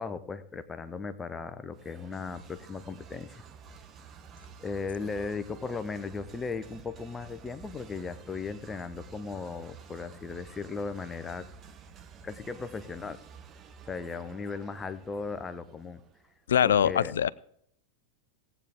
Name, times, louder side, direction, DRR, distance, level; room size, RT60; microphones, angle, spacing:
voice 1, 0.0-3.4 4.6-11.5 12.2-13.2 13.9-16.0 16.6-17.1, left 4 dB, 15° left, 12 dB, 0.8 m, -37 dB
sound 1, 1.7-16.4, right 6 dB, 25° right, 0.9 m, -51 dB
voice 2, 16.5-17.3, left 9 dB, 65° left, 21 dB, 0.4 m, -23 dB
17.5 x 8.4 x 3.6 m, 0.69 s
figure-of-eight pair, 90°, 0 cm